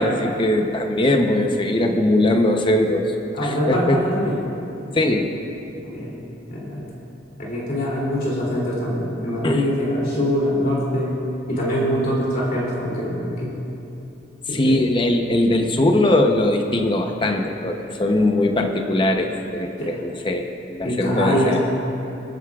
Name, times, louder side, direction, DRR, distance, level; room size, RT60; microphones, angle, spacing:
voice 1, 0.0-3.1 3.4-4.0 4.9-5.3 9.4-9.6 14.5-21.6, left 1 dB, 25° left, 4 dB, 0.7 m, -20 dB
voice 2, 3.3-4.4 5.7-6.2 6.5-6.8 7.4-11.2 11.5-13.5 14.5-14.9 19.8-19.9 20.8-21.6, equal, 50° left, -6 dB, 2.9 m, -23 dB
27.0 x 9.6 x 2.4 m, 2.9 s
head